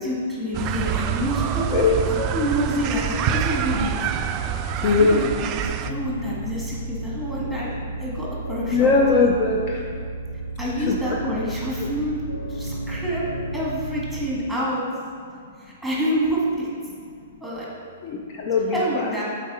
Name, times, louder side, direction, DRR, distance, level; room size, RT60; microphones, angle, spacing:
voice 1, 0.0-3.9 4.8-5.5 5.8-7.7 8.0-9.3 10.6-12.2 12.5-13.2 13.5-14.8 15.6-16.7 17.4-17.7 18.7-19.2, equal, ahead, -6 dB, 1.8 m, -27 dB
sound 1, 0.5-5.9, right 8 dB, 30° right, 0.3 m, -26 dB
voice 2, 1.7-2.3 4.8-5.2 8.7-9.8 10.8-11.0 11.2-11.3 18.0-19.1, left 4 dB, 40° left, 0 dB, 0.6 m, -20 dB
sound 2, 5.8-14.3, right 2 dB, 80° left, 0.7 m, -32 dB
8.4 x 4.3 x 4.0 m, 2.2 s
figure-of-eight pair, 110°, 0 cm